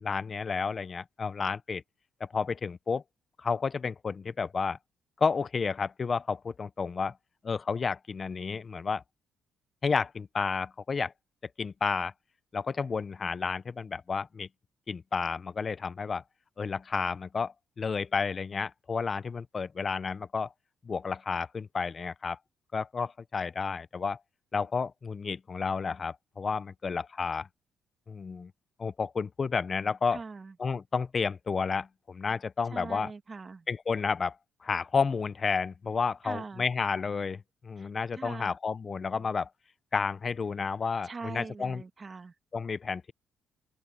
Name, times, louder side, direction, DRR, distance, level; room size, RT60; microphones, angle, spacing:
voice 1, 0.0-1.8 2.2-3.0 3.4-4.8 5.2-7.2 7.4-9.0 9.8-11.1 11.6-12.1 12.5-14.5 14.9-16.2 16.6-20.5 20.8-22.4 22.7-24.2 24.5-27.5 28.1-28.5 28.8-30.2 30.6-33.1 33.7-34.4 34.6-39.5 39.9-41.8 42.5-43.1, left 5 dB, 40° left, 0.7 m, -31 dB
voice 2, 30.1-30.5 32.7-33.7 36.2-36.7 37.8-38.5 41.0-42.3, right 4 dB, 35° right, 1.5 m, -42 dB
open air
cardioid pair, 90°, 0 cm